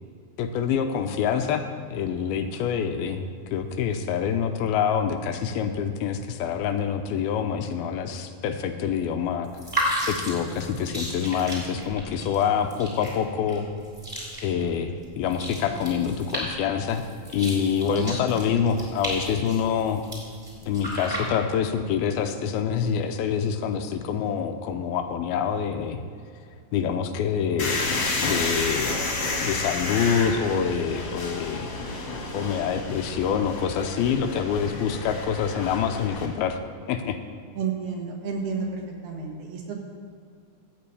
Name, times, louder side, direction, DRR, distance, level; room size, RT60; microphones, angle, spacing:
voice 1, 0.4-3.2 3.5-9.5 10.1-13.7 14.4-17.0 17.3-20.0 20.7-26.0 26.7-31.7 32.3-36.6 36.9-37.2, left 7 dB, 80° left, 7 dB, 2.4 m, -26 dB
sound 1, 9.4-21.6, equal, 10° right, 3.3 m, -34 dB
voice 2, 17.9-18.4 37.6-39.8, right 5 dB, 75° right, 0 dB, 3.6 m, -31 dB
sound 2, 27.6-36.3, left 3 dB, 45° left, 2.1 m, -30 dB
14.0 x 5.3 x 8.4 m, 2.2 s
omnidirectional pair, 4.6 m